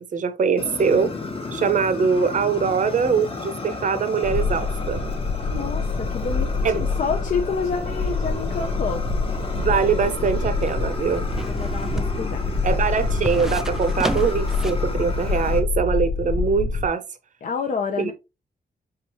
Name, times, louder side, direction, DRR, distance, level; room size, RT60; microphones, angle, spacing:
voice 1, 0.1-1.1 1.5-5.0 6.6-6.8 9.5-11.3 12.6-17.0 18.0-18.1, right 6 dB, 50° right, 0.7 m, -22 dB
Fire, 0.6-15.6, left 3 dB, 35° left, 1.0 m, -33 dB
sound 1, 4.2-16.9, left 3 dB, 80° left, 1.0 m, -26 dB
voice 2, 5.5-9.0 11.5-12.6 17.4-18.1, left 5 dB, 55° left, 0.6 m, -28 dB
sound 2, 9.8-14.9 15.2-15.3, equal, 5° right, 0.3 m, -33 dB
4.7 x 3.4 x 2.9 m
cardioid pair, 110°, 16 cm